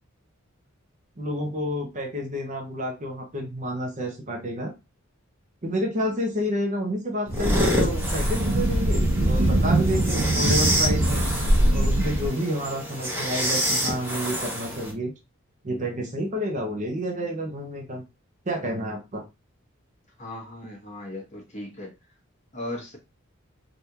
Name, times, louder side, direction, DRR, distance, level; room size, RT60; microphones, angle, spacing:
voice 1, 1.2-4.7 5.6-11.3 11.7-15.1 15.6-18.0 18.5-19.2, equal, 35° right, 2 dB, 0.7 m, -29 dB
sound 1, 7.3-14.9, equal, 10° right, 0.9 m, -28 dB
sound 2, 7.3-12.3, right 1 dB, 85° right, 0.8 m, -22 dB
voice 2, 20.2-21.9 22.5-23.0, left 1 dB, 35° left, -2 dB, 1.3 m, -37 dB
3.5 x 2.5 x 2.8 m, 0.25 s
head